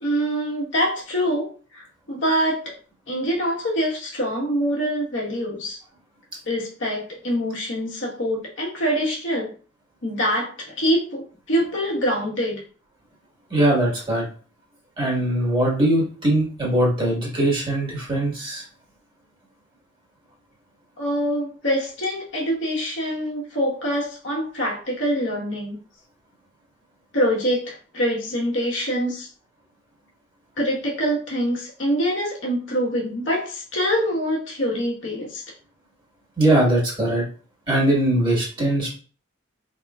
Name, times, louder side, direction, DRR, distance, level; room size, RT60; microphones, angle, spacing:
voice 1, 0.0-1.5 1.7-1.8 2.1-2.7 3.1-5.8 6.5-9.5 10.0-12.6 21.0-25.8 27.1-29.3 30.6-35.4, equal, 70° left, -3 dB, 1.4 m, -25 dB
voice 2, 13.5-14.3 15.0-18.6 36.4-37.2 37.7-38.9, right 1 dB, 25° right, -4 dB, 1.7 m, -21 dB
4.7 x 3.6 x 2.4 m, 0.39 s
head